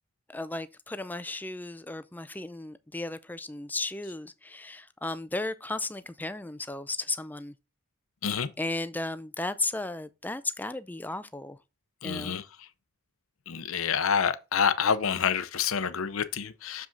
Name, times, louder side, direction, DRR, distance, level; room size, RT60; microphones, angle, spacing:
voice 1, 0.3-7.5 8.6-11.6 12.0-12.4, left 2 dB, 10° left, 0.4 m, -35 dB
voice 2, 12.0-12.4 13.5-16.9, left 7 dB, 70° left, 0.7 m, -27 dB
7.0 x 5.0 x 3.8 m
head